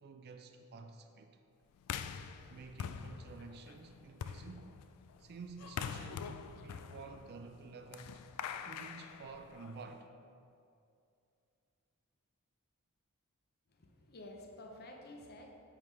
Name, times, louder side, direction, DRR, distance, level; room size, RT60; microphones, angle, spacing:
voice 1, 0.0-1.3 2.5-4.8 5.2-8.2 8.6-10.1, right 4 dB, 45° right, 6 dB, 0.3 m, -51 dB
sound 1, 1.8-9.9, left 7 dB, 90° left, 0.3 m, -45 dB
voice 2, 13.8-15.5, left 1 dB, 45° left, 2 dB, 0.7 m, -51 dB
9.3 x 3.7 x 3.2 m, 2.5 s
head